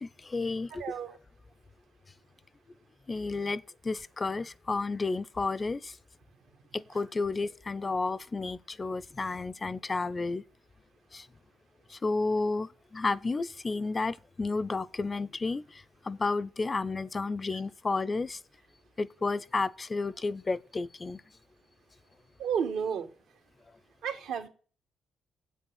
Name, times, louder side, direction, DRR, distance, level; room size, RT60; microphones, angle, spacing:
voice 1, 0.0-0.8 3.1-5.9 6.7-10.4 11.1-11.2 12.0-15.6 16.1-18.4 19.0-21.2, left 3 dB, 25° left, 0.5 m, -31 dB
voice 2, 0.7-1.2 22.4-23.1 24.0-24.5, right 7 dB, 80° right, 1.2 m, -32 dB
7.9 x 6.4 x 7.8 m
cardioid pair, 90°, 0 cm